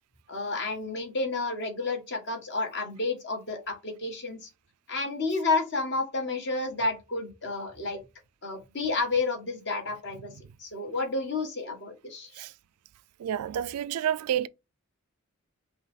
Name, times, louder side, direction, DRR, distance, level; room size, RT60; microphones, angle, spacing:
voice 1, 0.3-4.5 4.9-8.0 8.4-10.3 10.6-12.3, left 3 dB, 50° left, 1.3 m, -30 dB
voice 2, 13.2-14.5, right 10 dB, 90° right, 0.3 m, -29 dB
5.5 x 2.3 x 3.4 m
head